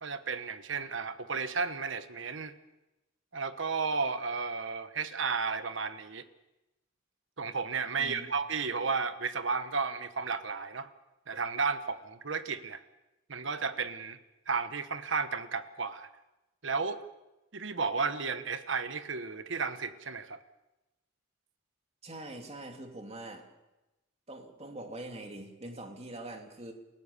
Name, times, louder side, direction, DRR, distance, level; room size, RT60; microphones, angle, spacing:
voice 1, 0.0-2.5 3.3-6.2 7.4-10.9 11.3-12.8 13.3-14.2 14.5-16.1 16.6-17.0 17.5-20.4, right 4 dB, 65° right, 11 dB, 1.3 m, -33 dB
voice 2, 8.0-8.3 22.0-23.5 24.3-26.7, right 1 dB, 30° right, 3 dB, 2.7 m, -43 dB
28.5 x 16.5 x 7.0 m, 0.98 s
head